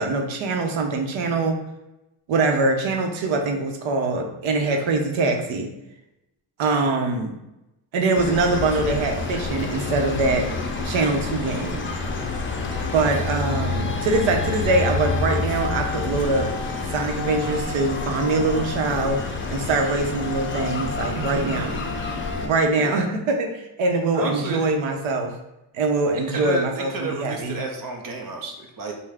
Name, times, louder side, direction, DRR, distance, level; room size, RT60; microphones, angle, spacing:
voice 1, 0.0-1.6 2.3-5.7 6.6-7.3 7.9-10.5 10.8-11.8 12.9-16.5 16.9-21.7 22.4-25.4 25.7-27.6, right 3 dB, 80° right, 3 dB, 0.9 m, -23 dB
sound 1, 8.1-22.5, left 3 dB, 25° left, 0.5 m, -28 dB
voice 2, 12.6-12.9 21.1-21.4 22.8-23.0 24.1-24.7 26.1-28.9, right 3 dB, 45° right, 2 dB, 0.7 m, -32 dB
5.4 x 2.2 x 3.5 m, 0.93 s
cardioid pair, 130°, 47 cm